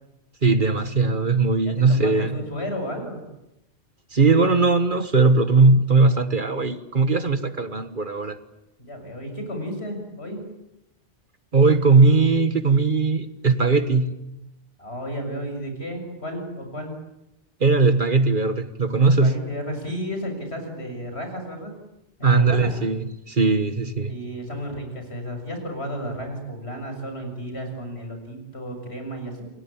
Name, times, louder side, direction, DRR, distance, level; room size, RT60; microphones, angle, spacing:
voice 1, 0.4-2.4 4.1-8.4 11.5-14.1 17.6-19.3 22.2-24.1, right 3 dB, 45° right, 11 dB, 1.6 m, -19 dB
voice 2, 1.6-3.2 8.8-10.5 14.8-17.0 19.2-21.8 22.2-22.7 24.1-29.5, equal, 65° left, 5 dB, 7.3 m, -33 dB
29.0 x 23.5 x 8.8 m, 0.88 s
omnidirectional pair, 1.2 m